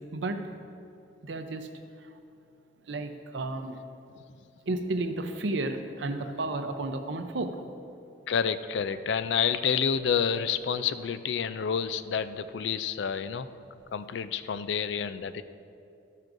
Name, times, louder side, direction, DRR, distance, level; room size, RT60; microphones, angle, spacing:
voice 1, 0.1-0.5 1.2-1.7 2.9-3.8 4.7-7.6, right 2 dB, 75° right, 8 dB, 0.6 m, -32 dB
voice 2, 8.3-13.5 13.9-15.4, left 7 dB, 70° left, 13 dB, 0.4 m, -29 dB
12.0 x 10.5 x 2.6 m, 2.5 s
head